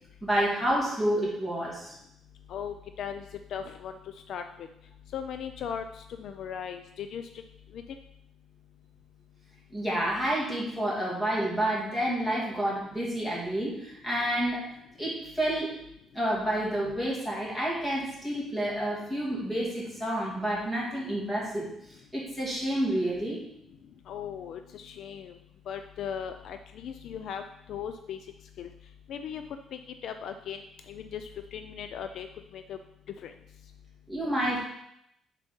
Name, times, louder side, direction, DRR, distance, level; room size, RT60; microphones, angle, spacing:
voice 1, 0.2-1.9 9.7-14.7 15.0-15.7 16.1-23.4 34.1-34.6, right 1 dB, 10° left, -5 dB, 2.5 m, -29 dB
voice 2, 2.5-3.2 3.5-4.0 4.3-4.7 5.1-5.8 6.2-7.2 7.7-7.8 24.1-25.3 25.7-27.4 27.7-28.2 28.6-28.7 29.1-29.4 30.0-30.6 30.9-32.3 32.5-32.8 33.2-33.3, left 8 dB, 60° left, 8 dB, 0.4 m, -37 dB
7.0 x 4.1 x 5.3 m, 0.78 s
cardioid pair, 140°, 0 cm